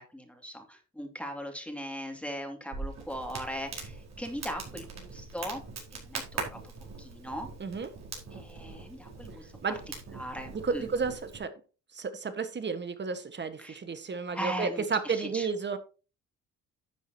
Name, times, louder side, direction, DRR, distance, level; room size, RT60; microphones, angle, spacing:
voice 1, 0.0-5.6 5.9-6.6 7.0-7.5 8.3-9.5 10.1-10.9 13.6-13.8 14.3-15.5, equal, 5° left, 2.6 m, -39 dB
Crackle, 2.7-11.4, right 4 dB, 60° right, 4.9 m, -42 dB
voice 2, 7.6-7.9 9.6-9.8 10.5-11.5 11.9-15.8, right 5 dB, 35° right, 1.7 m, -32 dB
11.5 x 8.2 x 3.0 m
cardioid pair, 90°, 30 cm